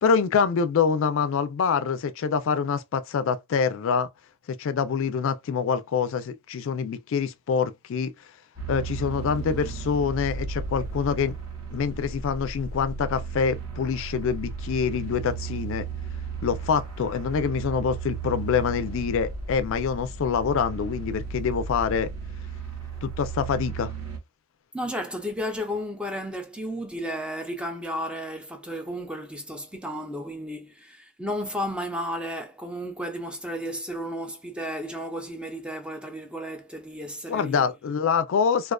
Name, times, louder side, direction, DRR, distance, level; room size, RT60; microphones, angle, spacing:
voice 1, 0.0-4.1 4.5-8.1 8.7-11.3 11.7-15.9 16.4-22.1 23.0-23.9 37.3-38.7, left 6 dB, 65° left, 0.3 m, -25 dB
sound 1, 8.6-24.2, right 4 dB, 80° right, 1.0 m, -35 dB
voice 2, 24.7-37.6, equal, 5° right, 0.4 m, -33 dB
2.3 x 2.3 x 2.2 m
head